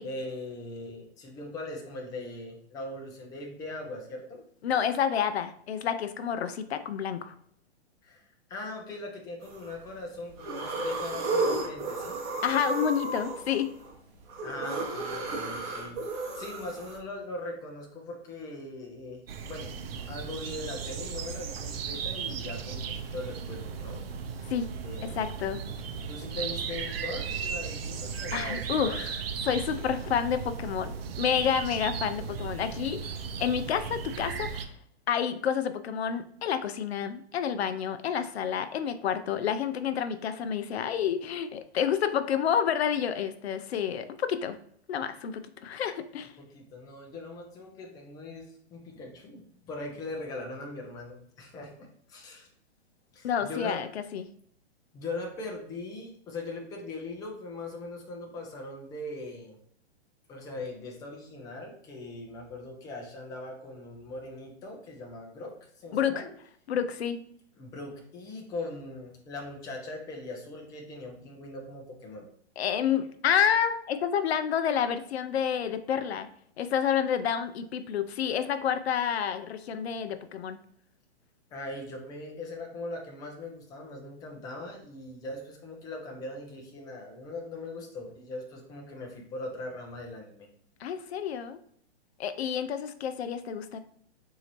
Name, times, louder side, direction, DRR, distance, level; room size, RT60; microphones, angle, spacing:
voice 1, 0.0-4.4 8.0-12.2 14.4-19.2 19.5-24.0 24.3-24.5 24.8-25.2 26.1-29.0 46.4-52.5 53.1-53.8 54.9-59.6 60.3-66.3 67.6-72.3 81.5-90.5, left 2 dB, 10° left, 1 dB, 0.5 m, -40 dB
voice 2, 4.6-7.3 12.4-13.7 24.5-24.7 25.2-25.6 28.3-29.2 29.4-34.7 35.1-44.6 44.9-46.3 53.2-54.3 65.9-66.2 66.7-67.2 72.6-76.3 76.6-80.6 90.8-91.6 92.2-93.8, left 8 dB, 70° left, 10 dB, 0.5 m, -29 dB
sound 1, 9.4-9.8 10.3-17.0, right 3 dB, 35° right, 0.9 m, -33 dB
sound 2, 19.3-34.6, right 6 dB, 60° right, 0.6 m, -36 dB
4.1 x 2.7 x 3.0 m, 0.66 s
hypercardioid pair, 135°, 33 cm